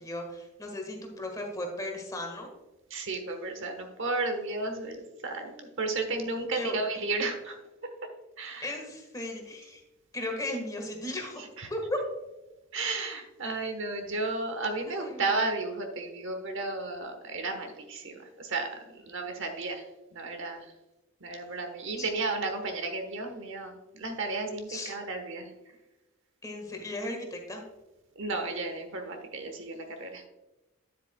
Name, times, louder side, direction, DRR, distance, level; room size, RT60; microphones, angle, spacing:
voice 1, 0.0-2.5 6.0-6.3 6.6-7.0 8.6-9.8 10.1-11.4 11.7-12.0 14.9-15.3 21.9-22.1 24.7-24.9 26.4-27.6, left 1 dB, 15° left, 2 dB, 1.4 m, -36 dB
voice 2, 2.9-7.6 8.4-8.7 11.6-11.7 12.7-19.8 20.1-20.7 21.2-25.5 28.2-30.2, right 3 dB, 60° right, 5 dB, 1.1 m, -33 dB
9.8 x 8.1 x 2.2 m, 1.0 s
head